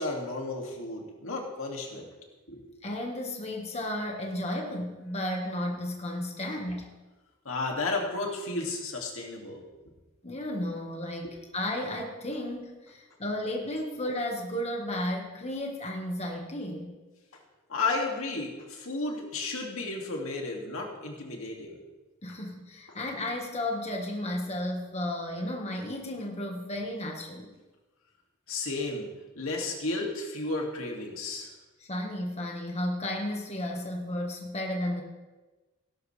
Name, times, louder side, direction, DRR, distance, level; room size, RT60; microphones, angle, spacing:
voice 1, 0.0-2.1 2.5-2.8 7.4-9.6 11.2-11.3 17.7-21.7 28.5-29.1 29.4-31.5, left 3 dB, 80° left, 0 dB, 2.4 m, -33 dB
voice 2, 2.8-6.9 10.2-16.9 22.2-27.5 31.8-35.0, left 1 dB, 30° left, 0 dB, 1.5 m, -33 dB
17.5 x 12.0 x 3.4 m, 1.2 s
head